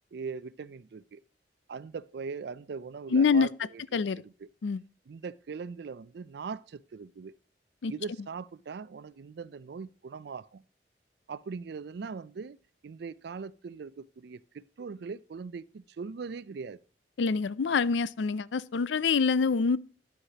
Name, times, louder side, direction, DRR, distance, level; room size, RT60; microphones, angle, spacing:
voice 1, 0.1-1.2 1.7-3.5 3.9-4.5 5.1-7.3 7.9-10.6 11.3-16.8, right 5 dB, 65° right, 0.4 m, -40 dB
voice 2, 3.1-3.5 3.9-4.2 4.6-4.8 7.8-7.9 17.2-19.8, left 5 dB, 85° left, 0.4 m, -25 dB
10.0 x 7.9 x 2.8 m
head